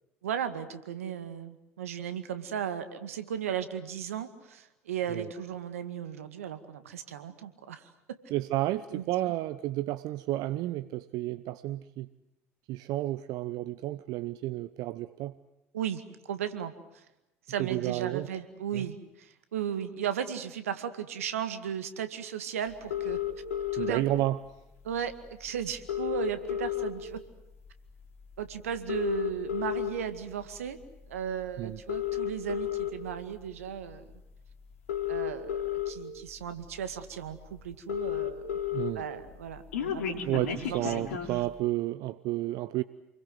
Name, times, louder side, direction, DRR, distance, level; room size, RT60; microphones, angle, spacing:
voice 1, 0.2-7.9 8.9-9.3 15.7-16.7 17.5-23.2 23.7-24.0 24.8-25.1 25.4-27.2 28.4-30.8 31.1-34.0 35.1-38.4 39.0-41.0, right 9 dB, 85° right, 10 dB, 2.0 m, -36 dB
voice 2, 8.3-12.1 12.7-15.3 17.6-18.3 18.7-18.8 23.8-24.4 31.6-31.8 38.7-39.0 40.2-42.8, right 16 dB, 60° right, 15 dB, 0.9 m, -31 dB
sound 1, 22.9-23.9 25.1-25.2 25.4-25.5 25.7-27.2 27.7-27.9 28.7-29.9 30.6-30.8 31.7-32.9 34.1-34.2 34.7-35.9 36.6-36.7 37.0-37.1 37.3-37.4 37.6-38.9 39.2-41.4, left 11 dB, 80° left, 3.4 m, -32 dB
29.0 x 22.5 x 7.8 m, 0.92 s
hypercardioid pair, 65°, 7 cm